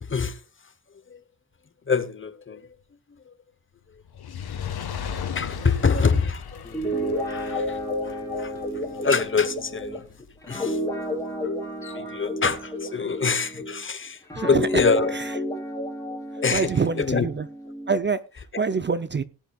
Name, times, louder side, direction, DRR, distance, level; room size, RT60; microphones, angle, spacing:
voice 1, 0.0-0.4 1.1-1.2 1.9-2.6 3.3-3.4 5.3-6.7 7.2-7.8 8.0-10.1 10.5-10.8 11.4-11.5 11.8-15.1 16.1-16.7 17.0-17.3, left 5 dB, 35° left, 1.0 m, -25 dB
Fire, 4.0-10.5 11.2-11.3, left 7 dB, 85° left, 1.5 m, -37 dB
Guitar, 6.6-13.8 14.3-18.0, left 1 dB, 10° left, 4.8 m, -31 dB
voice 2, 14.3-14.8 15.1-15.4 16.3-17.5 17.9-19.2, right 5 dB, 30° right, 0.6 m, -26 dB
18.5 x 11.0 x 2.4 m
wide cardioid pair, 135°, 37 cm